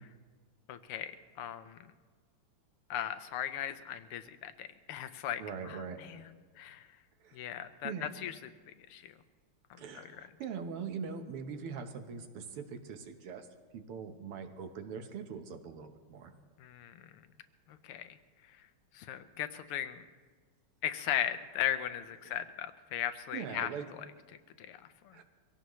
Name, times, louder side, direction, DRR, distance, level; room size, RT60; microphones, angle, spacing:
voice 1, 0.7-1.8 2.9-6.2 6.6-6.9 7.3-8.3 8.9-9.1 9.9-10.0 16.6-17.2 17.7-18.1 18.9-20.0 20.8-23.7 24.6-25.2, left 11 dB, 85° left, 11 dB, 1.6 m, -37 dB
voice 2, 5.4-6.3 7.2-7.4 7.8-8.1 9.8-13.5 13.7-16.3 22.2-22.3 23.3-23.9 25.1-25.2, right 6 dB, 85° right, 6 dB, 2.1 m, -42 dB
23.5 x 17.0 x 3.1 m, 1.5 s
omnidirectional pair, 2.4 m